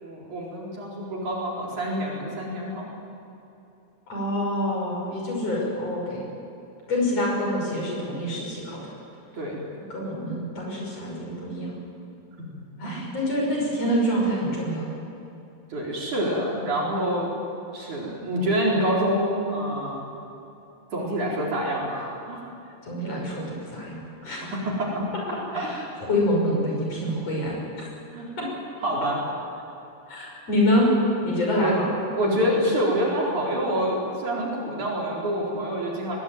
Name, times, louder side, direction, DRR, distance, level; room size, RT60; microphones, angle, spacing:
voice 1, 0.0-2.9 9.3-9.6 12.4-12.5 12.8-13.1 15.7-17.4 17.7-20.0 20.9-22.4 24.4-25.0 25.5-25.7 28.1-28.3 28.8-29.3 31.5-31.8 32.1-36.2, equal, 50° right, -4 dB, 5.6 m, -27 dB
voice 2, 4.1-6.2 6.9-8.8 9.9-11.7 12.8-14.9 22.8-24.4 25.5-27.6 28.4-28.5 30.1-30.9 31.2-31.9, left 1 dB, 40° left, -2 dB, 7.0 m, -26 dB
22.5 x 20.0 x 9.3 m, 2.8 s
omnidirectional pair, 4.5 m